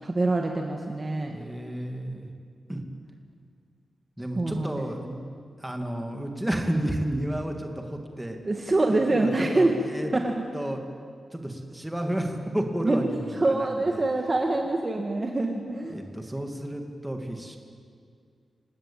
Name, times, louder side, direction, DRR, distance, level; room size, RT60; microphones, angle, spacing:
voice 1, 0.0-1.4 4.3-4.8 8.4-9.7 10.1-10.3 12.8-13.1 13.4-16.0, right 2 dB, 25° right, 2 dB, 1.7 m, -25 dB
voice 2, 1.3-2.3 2.7-2.8 4.2-5.2 5.6-8.4 8.9-10.1 10.5-10.8 11.3-14.0 15.9-17.6, right 1 dB, 5° right, 3 dB, 2.4 m, -31 dB
27.0 x 18.5 x 8.9 m, 2.2 s
wide cardioid pair, 155°, 0 cm